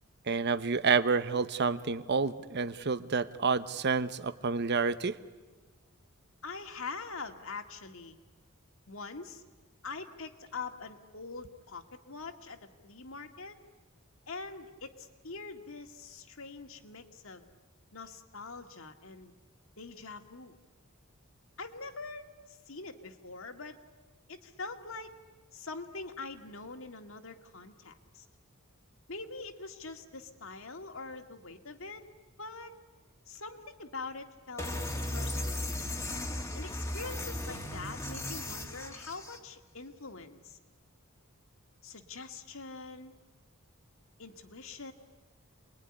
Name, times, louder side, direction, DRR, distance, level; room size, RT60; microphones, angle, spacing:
voice 1, 0.3-5.2, right 4 dB, 55° right, 13 dB, 1.0 m, -29 dB
voice 2, 6.4-8.2 8.9-9.4 9.8-13.6 14.3-17.5 17.9-19.3 19.8-20.6 21.6-23.8 24.3-25.2 25.5-28.3 29.1-32.1 32.4-32.7 33.3-34.7 35.1-35.7 36.5-40.6 41.8-43.1 44.2-44.9, left 4 dB, 70° left, 6 dB, 2.1 m, -44 dB
sound 1, 34.6-39.4, left 1 dB, 15° left, 1.8 m, -36 dB
28.0 x 21.5 x 9.9 m, 1.3 s
head